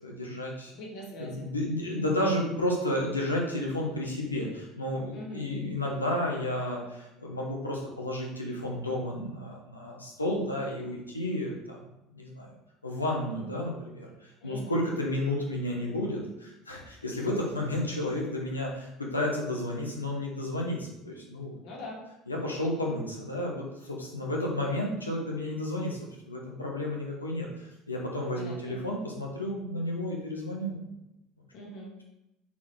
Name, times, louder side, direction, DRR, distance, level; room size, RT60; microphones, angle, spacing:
voice 1, 0.0-0.7 1.2-11.8 12.1-12.5 12.8-21.6 22.3-26.0 26.2-30.9, left 1 dB, 85° left, -2 dB, 1.3 m, -32 dB
voice 2, 0.7-1.5 5.1-5.5 14.4-14.8 21.6-22.0 28.3-28.8 31.5-31.9, equal, 55° left, -3 dB, 2.2 m, -42 dB
5.6 x 4.4 x 4.7 m, 0.89 s
figure-of-eight pair, 65°, 0 cm